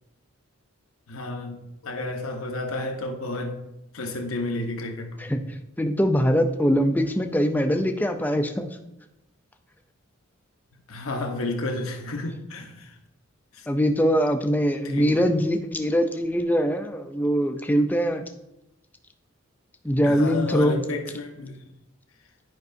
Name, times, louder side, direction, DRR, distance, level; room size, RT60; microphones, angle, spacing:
voice 1, 1.1-3.6 3.9-5.3 10.9-12.9 13.5-13.7 14.6-15.2 20.0-21.6, left 2 dB, 80° left, 0.9 m, -31 dB
voice 2, 5.8-8.7 13.7-18.2 19.8-20.8, equal, 10° left, 0.4 m, -22 dB
10.5 x 5.3 x 2.6 m
head